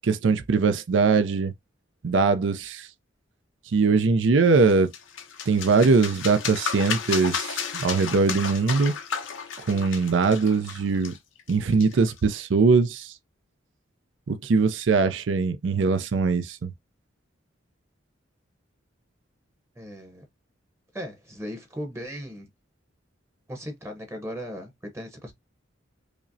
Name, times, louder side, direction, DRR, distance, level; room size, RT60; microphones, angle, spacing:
voice 1, 0.0-1.5 2.0-2.9 3.7-4.9 5.5-8.9 9.6-11.1 11.5-13.1 14.3-16.7, right 4 dB, 75° right, 0.4 m, -21 dB
sound 1, 4.7-12.2, left 7 dB, 90° left, 0.8 m, -33 dB
voice 2, 19.8-20.3 20.9-22.5 23.5-25.3, equal, 15° right, 0.8 m, -37 dB
4.9 x 2.1 x 2.6 m
head